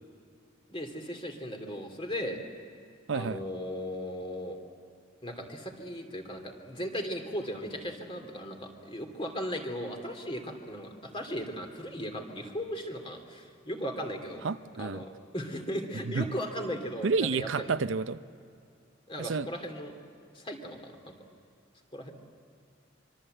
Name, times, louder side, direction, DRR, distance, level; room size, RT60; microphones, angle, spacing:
voice 1, 0.7-2.4 3.1-4.6 5.2-14.4 14.8-17.7 19.1-20.0 20.3-21.1 21.9-22.1, equal, 30° left, 4 dB, 2.8 m, -37 dB
voice 2, 3.1-3.4 14.4-15.0 16.1-16.3 17.0-18.2 19.2-19.5, right 4 dB, 85° right, 13 dB, 0.6 m, -30 dB
25.0 x 24.5 x 7.9 m, 2.5 s
head